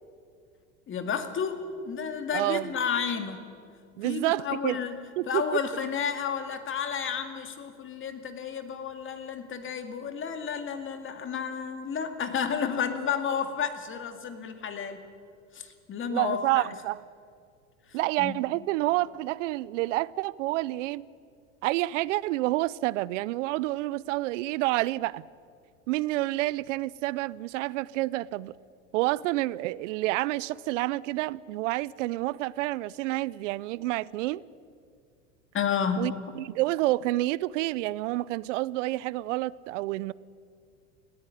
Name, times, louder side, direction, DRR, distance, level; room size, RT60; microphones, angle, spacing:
voice 1, 0.9-3.5 4.0-5.0 5.3-15.0 15.5-16.7 17.9-18.5 35.5-36.2, left 7 dB, 30° left, 2.2 m, -31 dB
voice 2, 2.3-2.7 4.0-4.8 5.2-5.4 16.1-17.0 17.9-21.1 21.6-25.2 25.9-28.5 28.9-34.4 36.0-40.1, right 18 dB, 70° right, 0.6 m, -29 dB
19.5 x 14.0 x 9.9 m
hypercardioid pair, 105°, 38 cm